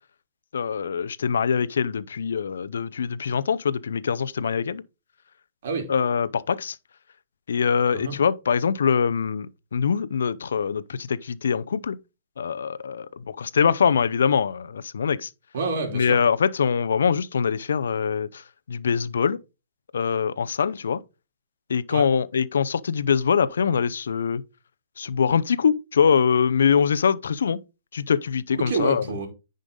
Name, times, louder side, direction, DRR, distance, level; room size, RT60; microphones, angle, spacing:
voice 1, 0.5-4.8 5.9-6.8 7.5-12.0 12.4-15.3 15.9-18.4 18.7-19.4 19.9-21.0 21.7-24.4 25.0-27.6 27.9-29.0, left 6 dB, 80° left, 0.6 m, -23 dB
voice 2, 15.5-16.2 21.9-22.1 28.6-29.3, right 4 dB, 60° right, 3.3 m, -28 dB
10.0 x 5.2 x 3.8 m
hypercardioid pair, 150°, 0 cm